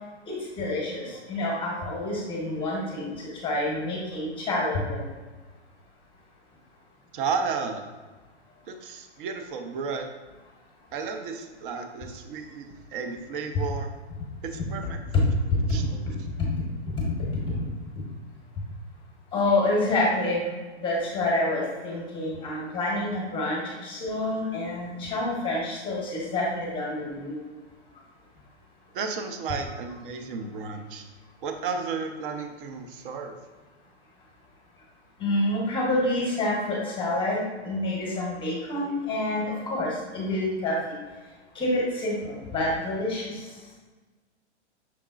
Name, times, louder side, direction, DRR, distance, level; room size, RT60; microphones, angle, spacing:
voice 1, 0.3-3.1 3.4-5.0 14.6-14.7 15.1-15.3 15.8-15.9 16.4-16.5 16.9-17.0 17.3-17.6 19.3-20.4 20.8-27.4 35.2-40.8 41.5-43.5, left 2 dB, 15° left, -3 dB, 0.9 m, -27 dB
voice 2, 7.1-7.9 8.7-10.1 10.9-13.9 14.4-15.2 15.7-16.1 28.9-31.0 31.4-33.3, right 5 dB, 50° right, 6 dB, 0.7 m, -33 dB
5.9 x 3.6 x 2.4 m, 1.3 s
hypercardioid pair, 120°, 35 cm